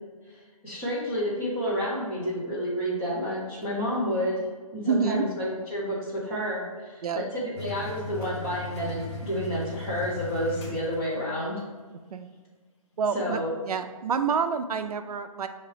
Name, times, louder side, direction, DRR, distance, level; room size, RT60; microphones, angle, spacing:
voice 1, 0.3-11.6 13.1-13.6, equal, 10° left, -7 dB, 0.7 m, -30 dB
voice 2, 4.8-5.2 7.0-7.3 12.1-12.3 13.0-15.5, right 5 dB, 75° right, 9 dB, 0.4 m, -28 dB
sound 1, 7.6-11.4, left 1 dB, 50° left, 0.8 m, -37 dB
5.8 x 2.8 x 3.2 m, 1.4 s
hypercardioid pair, 170°, 19 cm